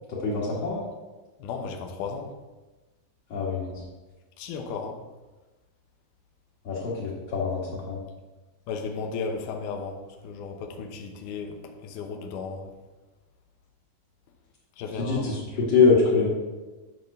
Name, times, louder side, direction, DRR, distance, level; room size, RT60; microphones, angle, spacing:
voice 1, 0.1-0.8 3.3-3.8 6.6-8.0 15.0-16.3, left 4 dB, 50° left, -7 dB, 2.1 m, -24 dB
voice 2, 1.4-2.3 4.4-4.9 8.7-11.6 11.8-12.7 14.8-15.3, left 5 dB, 70° left, 3 dB, 2.0 m, -34 dB
10.5 x 3.6 x 6.5 m, 1.2 s
omnidirectional pair, 4.5 m